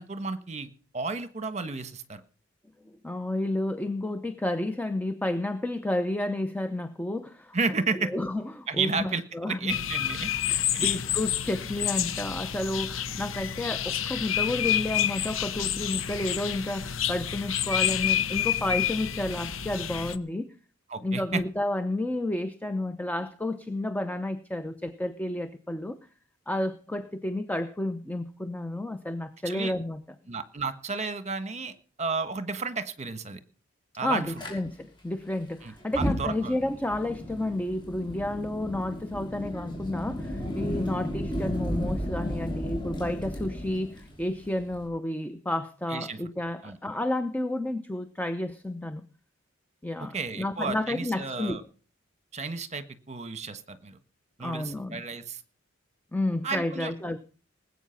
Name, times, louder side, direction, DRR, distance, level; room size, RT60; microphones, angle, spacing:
voice 1, 0.0-2.2 7.5-8.1 8.7-10.3 10.7-10.9 20.9-21.4 29.4-29.7 30.3-33.4 34.0-34.3 35.6-36.5 45.9-46.2 46.6-46.8 50.0-51.6 52.3-54.0 54.4-55.4 56.4-56.9, right 4 dB, 35° right, 11 dB, 1.4 m, -32 dB
voice 2, 3.0-7.6 7.9-9.7 10.5-20.5 21.0-26.0 26.5-30.0 34.0-49.0 49.8-51.6 54.4-55.0 56.1-57.2, left 1 dB, 10° left, 9 dB, 0.8 m, -31 dB
sound 1, 9.7-20.2, left 10 dB, 75° left, 1.0 m, -29 dB
Fire, 34.4-34.5 35.8-44.9, equal, 25° left, 6.1 m, -34 dB
19.5 x 8.4 x 5.8 m, 0.39 s
head